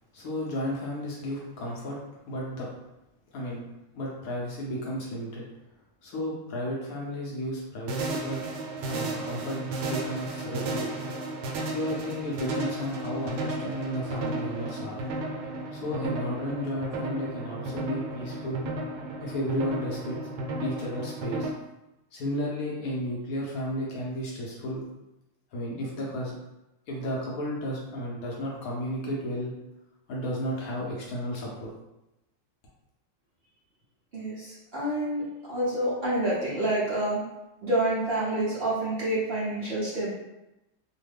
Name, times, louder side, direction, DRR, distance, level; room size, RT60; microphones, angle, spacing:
voice 1, 0.1-2.0 2.3-2.7 3.3-3.6 3.9-5.4 6.0-8.4 8.8-10.9 11.7-15.0 15.7-18.6 19.2-20.2 20.6-21.5 22.1-24.9 25.5-26.3 26.9-29.5 30.1-31.7, equal, 70° left, -3 dB, 0.9 m, -33 dB
sound 1, 7.9-21.5, right 2 dB, 85° right, 1.3 m, -34 dB
voice 2, 34.1-37.2 37.6-40.1, right 1 dB, 50° right, -10 dB, 0.7 m, -28 dB
3.1 x 2.1 x 3.3 m, 0.94 s
omnidirectional pair, 2.1 m